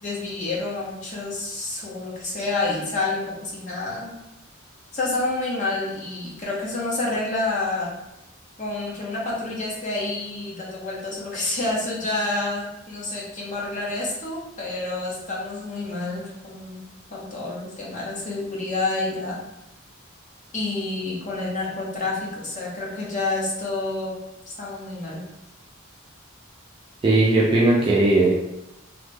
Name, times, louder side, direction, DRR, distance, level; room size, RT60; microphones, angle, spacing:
voice 1, 0.0-4.2 4.9-7.9 8.6-16.8 17.1-19.4 20.5-24.2 24.5-25.2, left 2 dB, 40° left, -4 dB, 0.9 m, -28 dB
voice 2, 27.0-28.3, right 2 dB, 25° right, -5 dB, 0.4 m, -18 dB
3.1 x 2.0 x 3.3 m, 0.90 s
head